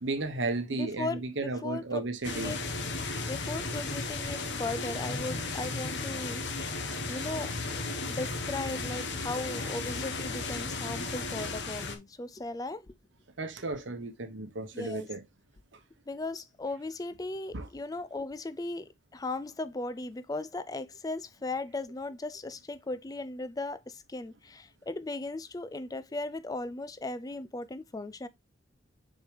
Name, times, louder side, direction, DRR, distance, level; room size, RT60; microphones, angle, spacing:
voice 1, 0.0-2.6 13.4-15.2 17.5-17.7, right 2 dB, 80° right, 1.1 m, -34 dB
voice 2, 0.7-2.0 2.3-2.6 3.3-6.4 7.1-7.6 8.1-12.9 14.7-15.1 16.1-28.3, left 2 dB, 20° left, 0.4 m, -37 dB
sound 1, 2.2-12.0, left 3 dB, 65° left, 1.3 m, -35 dB
6.6 x 4.6 x 3.3 m
head